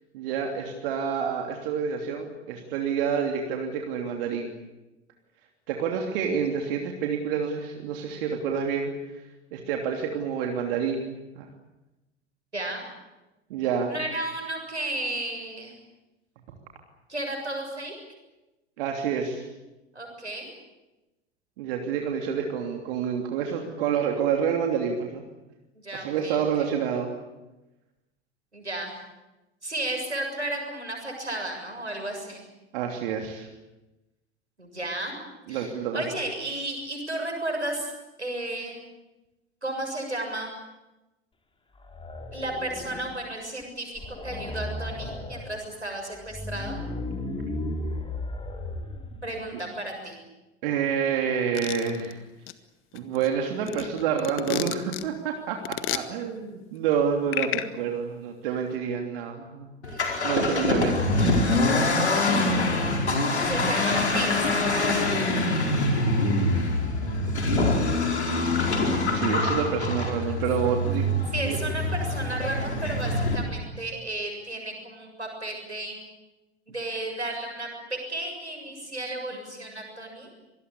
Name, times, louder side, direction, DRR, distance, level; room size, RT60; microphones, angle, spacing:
voice 1, 0.1-4.5 5.7-8.9 9.5-11.5 13.5-14.0 18.8-19.4 21.6-25.2 25.9-27.1 32.7-33.5 35.5-36.0 50.6-52.2 52.9-55.6 55.9-59.7 60.2-61.1 67.0-67.5 68.7-68.8 69.1-71.1 71.4-71.6, right 7 dB, 55° right, 2 dB, 3.1 m, -28 dB
voice 2, 12.5-12.9 13.9-15.7 17.1-18.0 19.9-20.5 25.8-26.7 28.5-28.9 29.6-32.4 34.6-35.2 35.5-37.9 38.2-38.8 39.6-40.5 42.3-46.8 49.2-50.2 63.4-64.6 71.3-76.0 76.7-80.3, right 1 dB, 90° right, 3 dB, 7.1 m, -33 dB
sound 1, 41.7-43.3 43.6-43.7 43.9-45.5 46.1-49.3, left 2 dB, 15° left, 4.3 m, -35 dB
sound 2, 51.6-52.1 52.5-52.6 53.0-55.0 55.7-56.0 57.3-57.7, left 14 dB, 40° left, 1.7 m, -30 dB
Accelerating revving vroom, 59.8-73.4, left 2 dB, 80° left, 4.7 m, -24 dB
25.5 x 20.5 x 8.3 m, 1.0 s
figure-of-eight pair, 80°, 33 cm